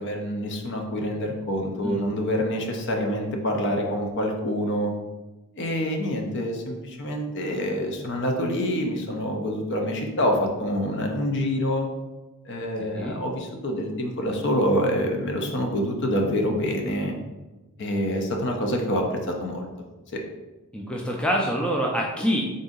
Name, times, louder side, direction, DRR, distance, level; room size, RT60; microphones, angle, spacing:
voice 1, 0.0-4.9 5.6-11.9 12.5-17.1 17.8-19.7, equal, 55° left, 2 dB, 0.6 m, -26 dB
voice 2, 12.8-13.2 20.7-22.5, equal, 5° left, -1 dB, 0.3 m, -26 dB
3.7 x 2.6 x 3.7 m, 1.1 s
head